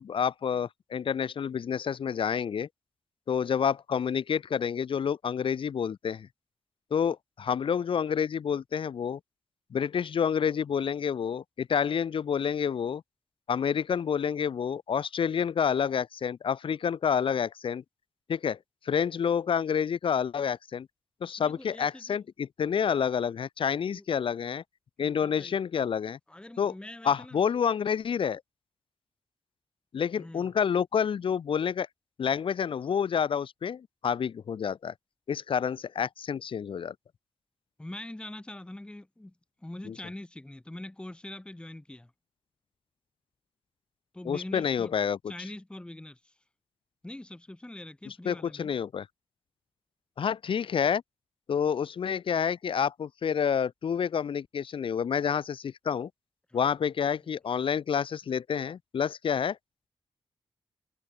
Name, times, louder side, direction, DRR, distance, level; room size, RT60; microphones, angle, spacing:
voice 1, 0.0-2.7 3.3-6.3 6.9-9.2 9.7-13.0 13.5-17.8 18.3-18.6 18.8-20.9 21.2-24.6 25.0-26.2 26.6-26.7 27.0-28.4 29.9-31.9 32.2-34.9 35.3-36.9 39.9-40.0 44.2-45.2 48.1-49.1 50.2-51.0 51.5-56.1 56.5-59.6, left 7 dB, 65° left, 0.8 m, -28 dB
voice 2, 21.4-22.2 23.9-24.0 25.0-25.6 26.3-27.4 30.2-30.5 37.8-42.1 44.1-44.9 45.3-46.4 47.0-48.7 56.5-56.6, left 1 dB, 10° left, 1.4 m, -43 dB
wide cardioid pair, 105°, 10 cm